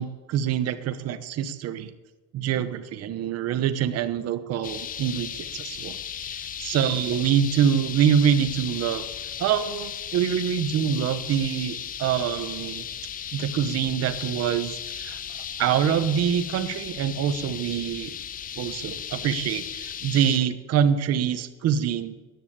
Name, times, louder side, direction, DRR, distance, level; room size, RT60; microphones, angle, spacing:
voice 1, 0.0-1.9 2.3-6.0 6.2-9.0 9.4-12.9 13.3-15.2 15.6-18.1 18.5-22.1, right 9 dB, 45° right, 11 dB, 1.1 m, -25 dB
sound 1, 4.6-20.4, left 9 dB, 25° left, 0.5 m, -36 dB
13.5 x 11.0 x 8.7 m, 1.2 s
cardioid pair, 170°, 36 cm